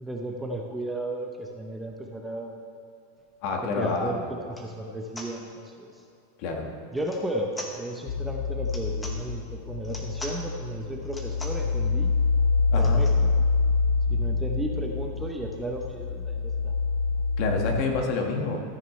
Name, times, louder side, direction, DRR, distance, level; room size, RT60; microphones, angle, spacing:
voice 1, 0.0-2.6 3.6-6.0 6.9-12.1 12.8-13.3 14.1-16.7, right 1 dB, 5° right, 2 dB, 0.7 m, -34 dB
voice 2, 3.4-4.2 6.4-6.7 12.7-13.0 17.4-18.6, left 3 dB, 50° left, 1 dB, 1.5 m, -27 dB
sound 1, 4.4-4.7 5.1-5.3 7.0-7.3 7.5-7.7 8.6-9.2 9.8-10.4 11.0-11.6 12.7-13.2 13.8-13.9 14.0-14.1 14.4-15.9, left 1 dB, 10° left, 1.2 m, -42 dB
sound 2, 8.1-17.8, left 4 dB, 65° left, 0.7 m, -26 dB
14.0 x 9.3 x 3.2 m, 2.6 s
supercardioid pair, 150°, 0 cm